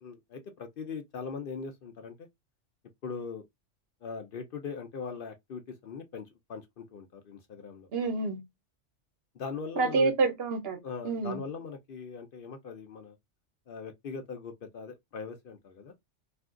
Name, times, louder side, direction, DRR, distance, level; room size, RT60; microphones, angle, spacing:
voice 1, 0.0-2.3 3.0-3.4 4.0-7.9 9.3-10.1 10.8-13.2 13.7-15.9, left 5 dB, 60° left, 0.7 m, -40 dB
voice 2, 7.9-8.4 9.8-11.4, right 3 dB, 60° right, 0.9 m, -28 dB
2.5 x 2.3 x 3.5 m
omnidirectional pair, 1.2 m